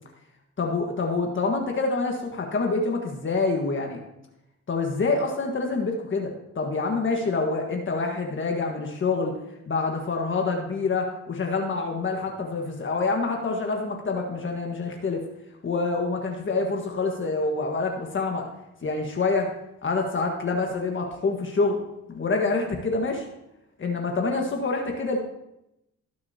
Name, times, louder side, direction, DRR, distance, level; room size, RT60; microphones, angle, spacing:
voice 1, 0.6-4.0 4.7-9.3 9.7-15.2 15.6-18.5 18.8-19.5 19.8-21.8 22.1-23.3 23.8-25.2, left 3 dB, 40° left, 2 dB, 1.6 m, -26 dB
19.5 x 6.6 x 2.9 m, 0.87 s
cardioid pair, 90°, 30 cm